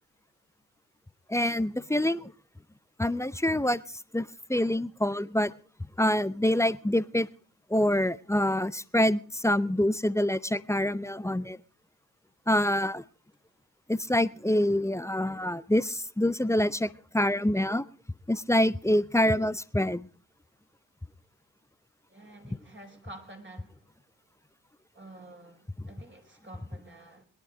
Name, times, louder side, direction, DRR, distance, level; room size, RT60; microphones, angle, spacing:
voice 1, 1.3-2.3 3.0-3.8 4.1-5.5 6.0-7.3 7.7-11.6 12.5-13.0 13.9-17.8 18.3-20.1 25.8-25.9, left 1 dB, 5° left, 0.7 m, -26 dB
voice 2, 22.1-23.8 24.9-27.2, right 2 dB, 25° right, 4.5 m, -49 dB
21.0 x 10.5 x 5.0 m
hypercardioid pair, 40°, 42 cm